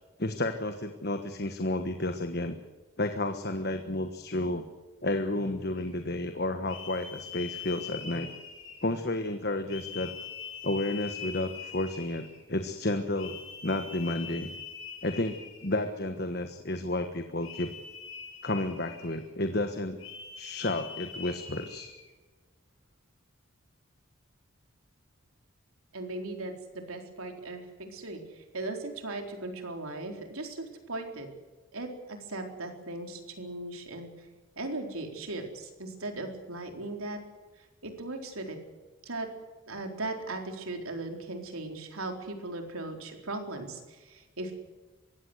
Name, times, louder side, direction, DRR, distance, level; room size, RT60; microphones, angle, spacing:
voice 1, 0.2-2.6 3.0-4.6 5.0-8.3 8.8-10.1 10.6-13.4 13.6-14.5 15.0-17.7 18.4-20.0 20.3-21.9, left 1 dB, 50° left, 7 dB, 1.4 m, -31 dB
sound 1, 5.7-6.0 6.7-9.1 9.7-12.4 13.1-15.9 17.4-19.3 20.0-22.1, left 7 dB, 70° left, 6.9 m, -43 dB
voice 2, 25.9-31.3 31.7-34.1 34.6-37.2 37.8-38.6 39.0-39.3 39.7-44.5, right 2 dB, 90° right, 4 dB, 4.2 m, -38 dB
23.5 x 16.5 x 8.0 m, 1.2 s
head